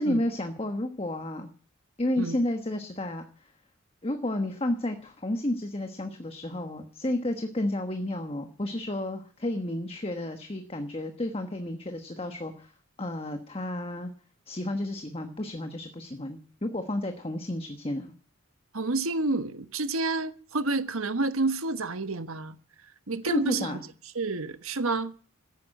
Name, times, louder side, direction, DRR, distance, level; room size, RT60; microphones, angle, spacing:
voice 1, 0.0-1.5 2.0-3.5 4.0-12.7 13.0-14.1 14.5-18.1 23.3-23.8, left 1 dB, 25° left, 1.2 m, -31 dB
voice 2, 18.7-22.6 23.1-23.8 24.1-25.2, right 3 dB, 75° right, 1.3 m, -29 dB
15.0 x 10.5 x 7.7 m
head